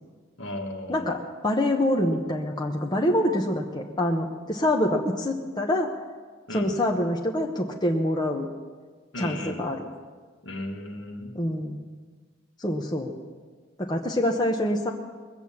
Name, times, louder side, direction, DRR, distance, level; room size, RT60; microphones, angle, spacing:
voice 1, 0.4-1.1 6.5-6.7 9.1-9.8 10.4-11.3, left 1 dB, 65° left, 3 dB, 1.7 m, -35 dB
voice 2, 0.9-5.9 6.5-8.5 9.2-9.9 11.3-11.8 12.6-13.1 13.8-14.9, left 1 dB, 20° left, 1 dB, 0.9 m, -25 dB
20.5 x 8.1 x 7.1 m, 1.5 s
head